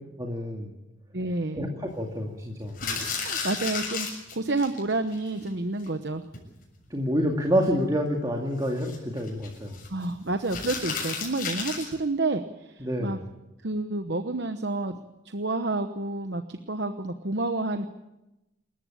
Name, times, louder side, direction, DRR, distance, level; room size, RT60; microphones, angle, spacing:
voice 1, 0.2-0.8 1.5-2.8 6.9-9.8 12.8-13.2, equal, 20° right, 1 dB, 2.2 m, -28 dB
voice 2, 1.1-1.7 2.8-6.2 9.9-13.2 13.6-15.0 15.2-17.9, right 2 dB, 55° right, 8 dB, 1.0 m, -29 dB
sound 1, 2.7-4.8 5.1-5.2 5.5-5.6 5.8-5.9 6.3-6.6 8.7-9.9 10.4-11.9, left 5 dB, 45° left, 7.2 m, -33 dB
27.5 x 15.0 x 8.6 m, 0.96 s
head